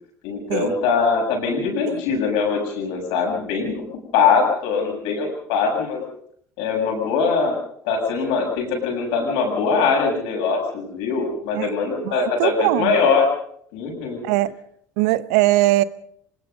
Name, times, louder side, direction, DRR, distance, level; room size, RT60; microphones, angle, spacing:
voice 1, 0.2-3.8 4.1-6.0 6.6-7.5 7.8-13.3 13.7-14.2, left 5 dB, 70° left, 2 dB, 7.4 m, -22 dB
voice 2, 12.0-12.9 14.2-14.5 15.0-15.8, right 17 dB, 70° right, 16 dB, 1.0 m, -20 dB
25.0 x 20.5 x 5.5 m, 0.67 s
hypercardioid pair, 65°, 9 cm